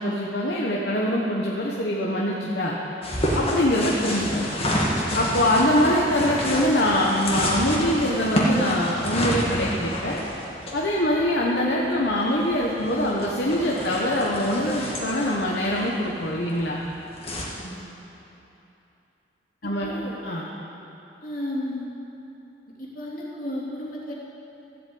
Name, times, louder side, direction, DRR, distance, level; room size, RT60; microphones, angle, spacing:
voice 1, 0.0-2.8 3.3-4.5 5.1-10.2 10.7-16.8 19.6-20.0 20.2-20.5, left 1 dB, 65° left, -4 dB, 1.3 m, -23 dB
sound 1, 3.0-17.4, equal, 35° left, 2.0 m, -29 dB
voice 2, 17.5-18.0 19.6-20.2 21.2-21.9 22.8-24.1, left 1 dB, 50° left, -5 dB, 3.1 m, -33 dB
14.0 x 8.2 x 8.7 m, 3.0 s
head